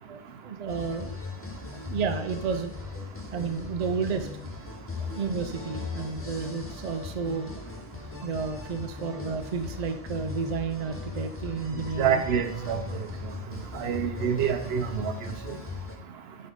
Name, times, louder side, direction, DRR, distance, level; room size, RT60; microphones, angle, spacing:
voice 1, 0.1-1.2 1.7-2.7 3.3-4.3 5.0-7.5 8.2-12.2, right 5 dB, 45° right, 7 dB, 0.6 m, -31 dB
sound 1, 0.7-16.0, left 4 dB, 15° left, 0.6 m, -39 dB
voice 2, 12.0-12.8 13.8-15.1, right 8 dB, 80° right, 8 dB, 0.9 m, -26 dB
7.6 x 3.9 x 3.5 m, 0.71 s
omnidirectional pair, 1.1 m